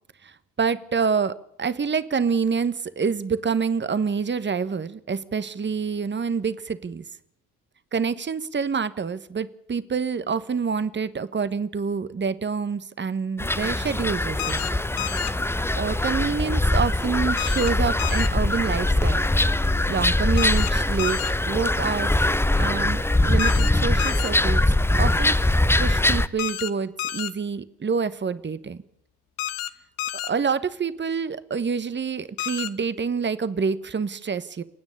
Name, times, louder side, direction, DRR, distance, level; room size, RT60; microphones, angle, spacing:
voice 1, 0.2-7.0 7.9-14.7 15.8-19.3 19.9-21.2 21.5-22.2 22.5-24.6 25.0-25.4 25.8-28.8 30.2-34.6, right 5 dB, 25° right, 15 dB, 1.2 m, -27 dB
sound 1, 13.4-26.3, left 1 dB, 5° left, 0.8 m, -22 dB
sound 2, 14.4-14.7 15.0-15.3 17.4-17.7 18.0-18.3 20.4-20.7 21.0-21.3 23.4-23.7 24.0-24.3 26.4-26.7 27.0-27.3 29.4-29.7 30.0-30.3 32.4-32.7, left 13 dB, 70° left, 1.1 m, -30 dB
28.5 x 9.6 x 9.9 m, 0.76 s
figure-of-eight pair, 45°, 45 cm